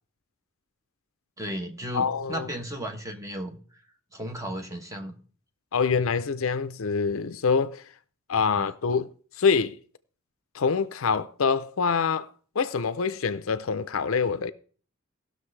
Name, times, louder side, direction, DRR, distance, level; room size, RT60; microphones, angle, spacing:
voice 1, 1.4-3.6 4.1-5.2 8.5-8.7, equal, 15° right, 1.1 m, -35 dB
voice 2, 1.9-2.5 5.7-7.8 8.3-9.1 9.4-9.8 10.5-12.3 12.6-14.5, left 5 dB, 70° left, 0.5 m, -25 dB
18.0 x 6.4 x 3.2 m
head